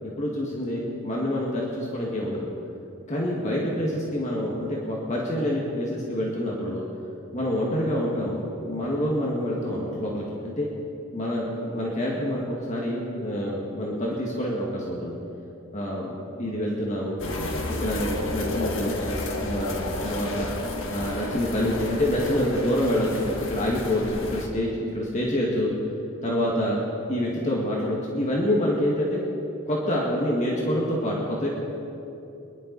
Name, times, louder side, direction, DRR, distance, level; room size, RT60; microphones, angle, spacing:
voice 1, 0.0-2.5 3.1-6.8 7.3-10.7 11.1-15.2 15.7-17.3 17.8-20.5 20.9-25.7 26.2-26.8 27.1-29.2 29.6-31.5, left 1 dB, 35° left, -4 dB, 1.8 m, -27 dB
sound 1, 17.2-24.5, left 1 dB, 70° left, 1.5 m, -32 dB
23.5 x 11.5 x 4.0 m, 2.9 s
head